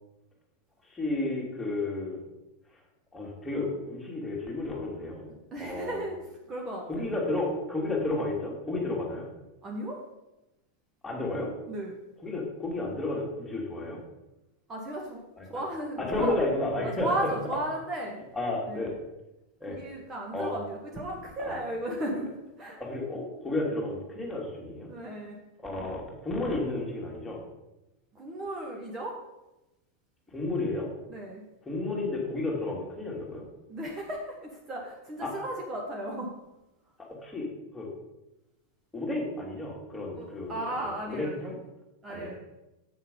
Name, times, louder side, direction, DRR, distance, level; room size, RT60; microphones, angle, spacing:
voice 1, 0.9-2.2 3.1-5.2 5.6-6.0 6.9-9.3 11.0-11.5 12.2-14.0 15.4-15.5 16.0-17.1 18.4-18.9 19.6-19.8 20.3-20.6 21.4-21.5 22.8-24.9 25.6-27.4 30.3-30.9 31.7-33.4 35.2-35.3 37.1-37.9 38.9-40.6 40.8-41.6 42.1-42.3, left 2 dB, 10° left, -3 dB, 2.5 m, -32 dB
voice 2, 5.5-7.1 9.6-10.0 11.7-12.0 14.7-16.3 16.8-18.2 18.7-19.0 19.7-22.8 24.9-25.4 28.1-29.2 31.1-31.4 33.7-36.3 40.1-41.4 42.0-42.4, right 1 dB, 25° right, -1 dB, 1.4 m, -35 dB
7.9 x 6.4 x 5.4 m, 0.98 s
figure-of-eight pair, 90°, 0 cm